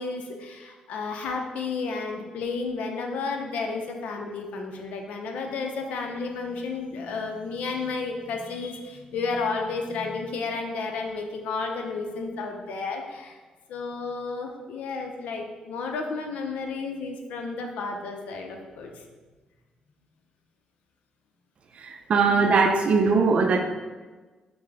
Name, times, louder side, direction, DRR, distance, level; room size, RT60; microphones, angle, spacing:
voice 1, 0.0-13.4 13.7-19.0, left 4 dB, 85° left, 3 dB, 0.5 m, -32 dB
voice 2, 21.8-23.6, right 4 dB, 55° right, 5 dB, 0.4 m, -21 dB
5.7 x 2.1 x 3.3 m, 1.3 s
cardioid pair, 95°, 2 cm